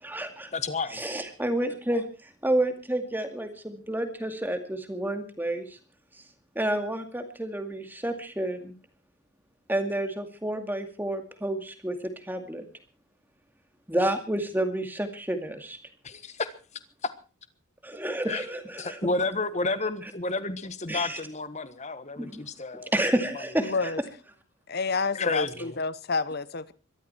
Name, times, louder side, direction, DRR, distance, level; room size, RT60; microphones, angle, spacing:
voice 1, 0.0-0.5 0.9-5.8 6.6-8.7 9.7-12.6 13.9-15.8 17.8-19.0 20.9-21.2 22.2-22.4 22.9-23.9, right 1 dB, 10° right, 2.3 m, -30 dB
voice 2, 0.5-1.0 16.0-16.5 17.0-17.1 18.3-18.4 18.8-22.9 23.3-23.4 25.1-25.8, left 3 dB, 30° left, 1.4 m, -31 dB
voice 3, 23.6-24.0 24.7-26.7, left 4 dB, 45° left, 0.9 m, -29 dB
23.0 x 13.0 x 4.5 m
head